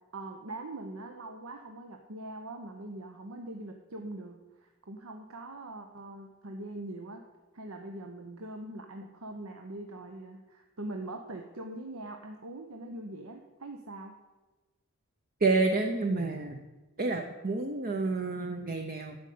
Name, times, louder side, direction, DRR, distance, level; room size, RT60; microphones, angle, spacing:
voice 1, 0.1-7.2 7.5-14.1, right 2 dB, 70° right, 4 dB, 0.9 m, -42 dB
voice 2, 15.4-16.6 17.0-19.2, right 3 dB, 40° right, 5 dB, 0.7 m, -29 dB
11.5 x 5.2 x 8.4 m, 1.2 s
head